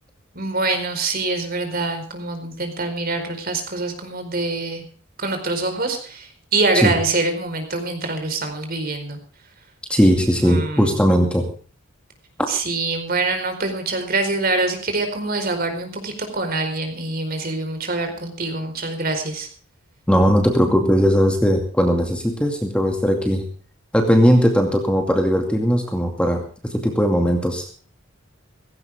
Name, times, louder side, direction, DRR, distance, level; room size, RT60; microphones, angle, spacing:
voice 1, 0.3-4.8 5.2-9.2 10.4-10.9 12.5-19.5, right 3 dB, 45° right, 6 dB, 4.6 m, -25 dB
voice 2, 9.9-11.5 20.1-23.4 23.9-27.7, equal, 5° left, 3 dB, 2.3 m, -18 dB
17.5 x 16.5 x 3.6 m, 0.42 s
head